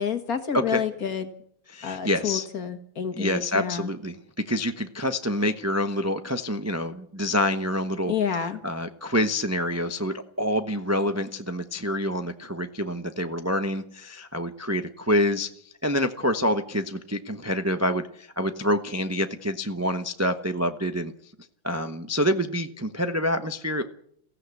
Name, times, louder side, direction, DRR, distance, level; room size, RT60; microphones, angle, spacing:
voice 1, 0.0-1.3 1.8-3.9 8.1-8.6, left 7 dB, 45° left, 9 dB, 2.0 m, -29 dB
voice 2, 1.7-2.5 3.1-4.2 4.5-8.1 8.6-15.5 15.8-21.1 21.6-23.8, equal, 20° right, 8 dB, 0.4 m, -27 dB
23.0 x 15.5 x 8.4 m, 0.67 s
omnidirectional pair, 2.3 m